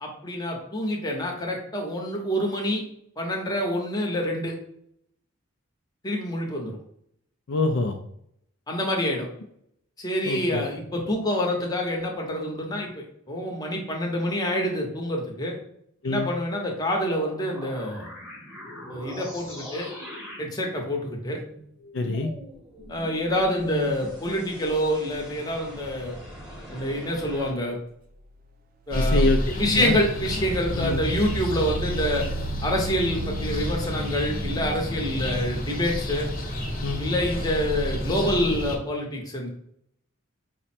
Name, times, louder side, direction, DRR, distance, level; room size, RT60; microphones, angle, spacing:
voice 1, 0.0-2.8 3.2-4.5 6.0-6.8 8.7-9.3 10.0-15.6 16.1-18.1 18.9-19.9 20.4-21.4 22.9-26.2 26.7-27.8 28.9-29.2 29.6-32.3 32.6-36.3 37.0-39.5, equal, 20° left, 0 dB, 0.8 m, -27 dB
voice 2, 7.5-8.0 10.2-10.7 16.0-16.3 21.9-22.3 28.9-30.0 30.7-31.0 36.8-37.1, left 2 dB, 60° left, 4 dB, 0.4 m, -26 dB
sound 1, 17.1-27.5, equal, ahead, 1.1 m, -41 dB
Engine, 28.3-28.4 29.0-34.9, right 5 dB, 40° right, 0.4 m, -36 dB
sound 2, 28.9-38.8, left 1 dB, 45° left, 0.7 m, -29 dB
5.0 x 2.1 x 4.2 m, 0.72 s
head